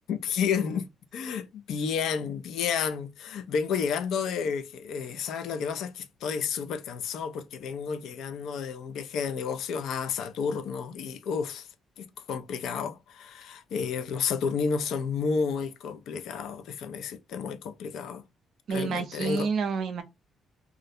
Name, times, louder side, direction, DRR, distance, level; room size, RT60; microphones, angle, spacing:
voice 1, 0.1-11.7 12.0-18.2 18.7-19.5, left 6 dB, 65° left, 0.3 m, -31 dB
voice 2, 18.7-20.0, right 5 dB, 50° right, 0.5 m, -29 dB
2.4 x 2.0 x 2.6 m
cardioid pair, 165°, 0 cm